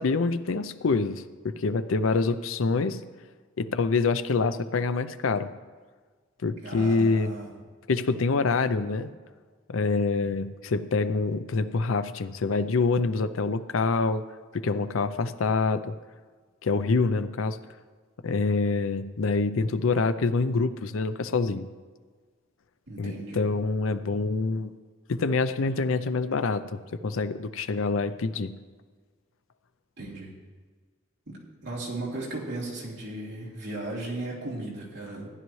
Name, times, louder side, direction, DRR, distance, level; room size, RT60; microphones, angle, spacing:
voice 1, 0.0-3.0 3.6-5.5 6.4-7.3 7.9-9.1 9.7-14.2 14.5-15.9 16.6-17.6 18.2-21.7 23.0-24.7 25.1-28.5, left 4 dB, 80° left, 12 dB, 0.5 m, -26 dB
voice 2, 6.6-7.5 22.9-23.4 30.0-30.3 31.3-35.3, right 2 dB, 60° right, -5 dB, 2.9 m, -36 dB
15.0 x 10.5 x 3.2 m, 1.5 s
head